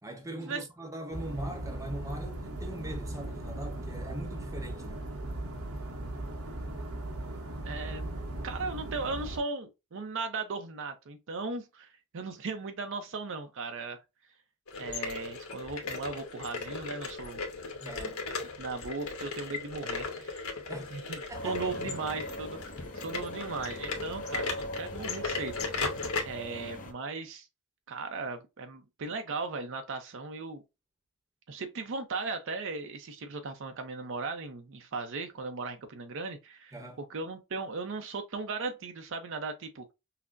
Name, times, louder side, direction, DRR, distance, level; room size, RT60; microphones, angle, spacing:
voice 1, 0.0-5.1 17.8-18.2 20.7-21.0 21.3-22.1 36.7-37.0, right 1 dB, 15° right, 0.8 m, -41 dB
sound 1, 1.1-9.4, right 1 dB, 80° right, 1.0 m, -38 dB
voice 2, 7.6-8.1 8.4-14.0 14.8-17.4 18.6-20.4 20.9-22.6 22.9-25.9 26.2-27.5 27.9-30.6 31.5-36.7 37.1-39.8, right 4 dB, 60° right, 0.5 m, -37 dB
sound 2, 14.7-26.2, left 4 dB, 80° left, 1.0 m, -37 dB
sound 3, 21.3-26.9, left 1 dB, 40° left, 0.6 m, -41 dB
5.6 x 2.0 x 2.5 m
head